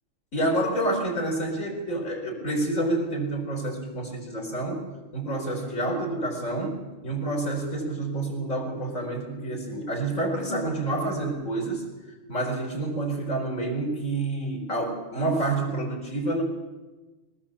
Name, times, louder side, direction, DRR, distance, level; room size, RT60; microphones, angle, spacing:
voice 1, 0.3-4.9 5.1-11.9 12.3-16.4, right 2 dB, 70° left, 0 dB, 5.4 m, -28 dB
23.0 x 19.5 x 7.4 m, 1.2 s
omnidirectional pair, 1.4 m